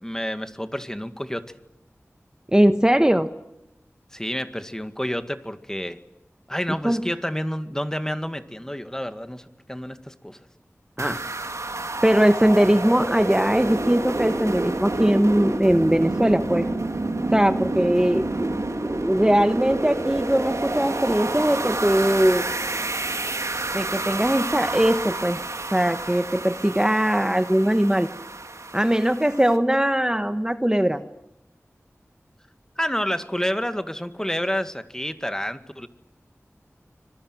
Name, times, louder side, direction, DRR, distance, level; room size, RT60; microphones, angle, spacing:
voice 1, 0.0-1.5 4.1-6.0 6.5-10.4 32.8-35.9, equal, 10° left, 9 dB, 2.0 m, -29 dB
voice 2, 2.5-3.3 6.8-7.0 11.0-11.3 12.0-16.7 17.3-18.5 18.8-22.4 23.7-25.4 25.7-28.1 28.7-31.0, right 1 dB, 15° right, 9 dB, 1.2 m, -20 dB
sound 1, 11.0-29.6, right 2 dB, 85° right, 3.2 m, -29 dB
26.0 x 22.0 x 9.2 m, 0.90 s
wide cardioid pair, 45°, 5 cm